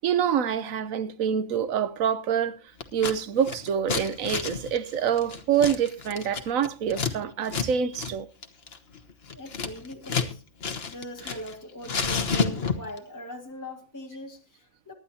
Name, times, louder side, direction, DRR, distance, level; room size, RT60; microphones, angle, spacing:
voice 1, 0.0-2.6 2.9-8.3, right 8 dB, 90° right, 1.3 m, -26 dB
Scissors, 2.8-3.2 3.4-7.1 7.5-7.7 7.9-8.1 8.4-10.3 10.6-11.5 11.8-13.0, left 5 dB, 50° left, 1.4 m, -30 dB
voice 2, 9.3-10.4 10.9-14.9, equal, 15° left, 1.8 m, -41 dB
24.0 x 11.5 x 2.8 m
omnidirectional pair, 1.4 m